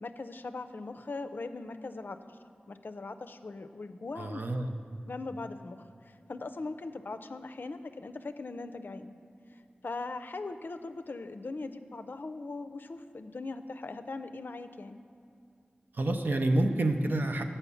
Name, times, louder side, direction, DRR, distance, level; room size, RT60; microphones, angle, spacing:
voice 1, 0.0-2.2 2.7-4.4 5.1-5.8 6.3-9.1 9.8-15.0, left 3 dB, 70° left, 9 dB, 0.4 m, -40 dB
voice 2, 4.2-4.7 15.9-17.4, right 1 dB, 65° right, 5 dB, 0.6 m, -28 dB
7.1 x 5.5 x 6.9 m, 2.4 s
wide cardioid pair, 45°, 4 cm